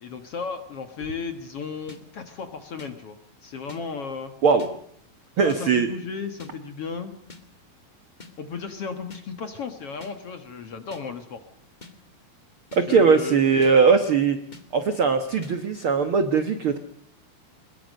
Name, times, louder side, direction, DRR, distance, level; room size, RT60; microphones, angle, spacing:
voice 1, 0.0-4.3 5.4-7.1 8.4-11.4 12.7-13.4, left 5 dB, 55° left, 8 dB, 1.8 m, -34 dB
sound 1, 1.9-2.0 2.8-2.9 3.7-3.8 4.6-4.7 5.5-5.6 6.4-6.5 7.3-7.4 8.2-8.3 9.1-9.2 10.0-10.1 10.9-11.0 11.8-11.9 12.7-12.8 13.6-13.7 14.5-14.6 15.4-15.5, left 3 dB, 25° left, 1.0 m, -44 dB
voice 2, 5.4-5.9 12.7-14.4 14.7-16.8, right 5 dB, 80° right, 9 dB, 1.1 m, -20 dB
22.0 x 21.5 x 6.5 m, 0.64 s
omnidirectional pair, 4.4 m